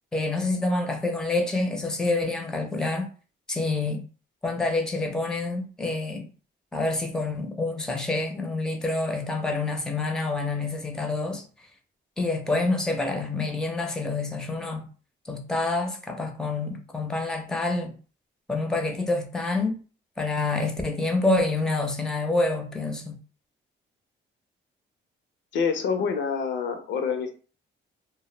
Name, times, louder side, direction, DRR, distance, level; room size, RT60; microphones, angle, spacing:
voice 1, 0.1-3.1 3.5-4.0 4.4-6.3 6.7-11.4 12.2-14.9 15.3-17.9 18.5-19.8 20.2-23.2, left 2 dB, 5° left, 0.5 m, -27 dB
voice 2, 25.5-27.3, left 6 dB, 70° left, 0.5 m, -26 dB
2.1 x 2.0 x 3.1 m
cardioid pair, 90°, 20 cm